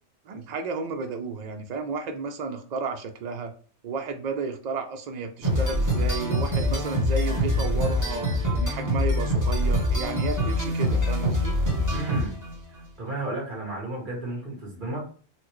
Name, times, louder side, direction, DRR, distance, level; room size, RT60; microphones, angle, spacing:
voice 1, 0.3-3.5 3.8-8.3 8.5-11.6, right 4 dB, 80° right, 5 dB, 0.3 m, -32 dB
sound 1, 5.4-12.6, left 1 dB, 15° right, 0.8 m, -25 dB
voice 2, 11.9-12.4 13.0-15.1, right 2 dB, 45° right, -2 dB, 1.2 m, -33 dB
4.2 x 2.1 x 3.0 m, 0.41 s
omnidirectional pair, 1.3 m